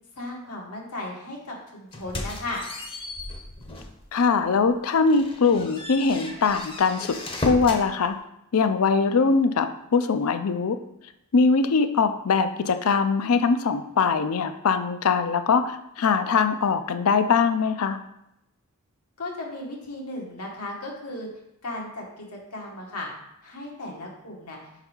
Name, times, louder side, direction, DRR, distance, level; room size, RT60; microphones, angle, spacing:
voice 1, 0.1-2.6 19.2-21.3 21.6-23.1 23.4-24.6, left 2 dB, 90° left, -1 dB, 1.6 m, -36 dB
sound 1, 1.9-4.0 4.5-4.6 5.0-7.9, left 2 dB, 25° left, 0.7 m, -35 dB
voice 2, 4.1-7.2 7.4-8.2 8.5-10.8 11.3-18.0, left 5 dB, 70° left, 10 dB, 0.5 m, -22 dB
5.5 x 3.9 x 4.5 m, 0.83 s
head